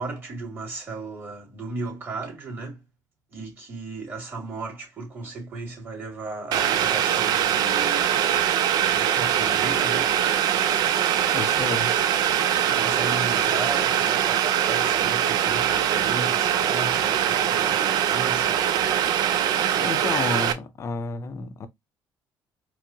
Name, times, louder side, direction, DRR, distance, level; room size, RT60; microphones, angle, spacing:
voice 1, 0.0-2.8 3.3-8.5 8.9-10.2 12.6-18.7, right 3 dB, 30° right, 2.2 m, -35 dB
Boiling, 6.5-20.5, right 10 dB, 65° right, 0.5 m, -22 dB
voice 2, 11.3-12.0 19.4-21.7, left 4 dB, 40° left, 0.6 m, -31 dB
4.5 x 2.1 x 2.8 m
cardioid pair, 115°, 7 cm